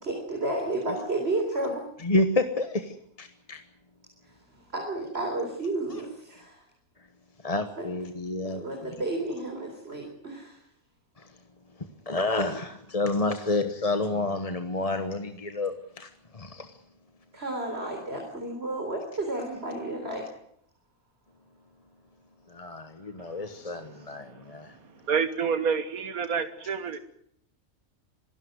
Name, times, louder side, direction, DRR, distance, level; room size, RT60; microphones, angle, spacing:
voice 1, 0.0-1.8 4.7-6.6 7.8-7.9 8.4-10.6 17.3-20.2, right 2 dB, 45° right, 2 dB, 4.4 m, -32 dB
voice 2, 2.0-3.6 5.9-6.0 7.4-8.9 11.2-11.3 12.1-16.7 22.5-24.8, left 2 dB, 25° left, 8 dB, 1.2 m, -29 dB
voice 3, 25.1-27.0, right 6 dB, 90° right, 11 dB, 1.8 m, -28 dB
26.5 x 12.5 x 9.5 m, 0.70 s
omnidirectional pair, 1.5 m